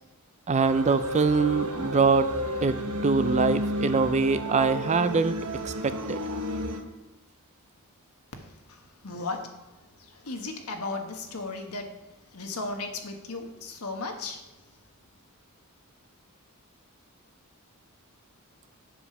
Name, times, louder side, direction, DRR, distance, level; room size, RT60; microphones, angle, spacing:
voice 1, 0.5-2.3 2.6-5.4 5.6-6.2, right 4 dB, 30° right, 11 dB, 0.4 m, -24 dB
sound 1, 0.6-6.8, equal, 80° right, 1.0 m, -32 dB
voice 2, 8.4-9.7 10.0-11.9 12.3-14.5, left 3 dB, 75° left, 4 dB, 1.4 m, -36 dB
7.7 x 5.0 x 6.8 m, 1.0 s
head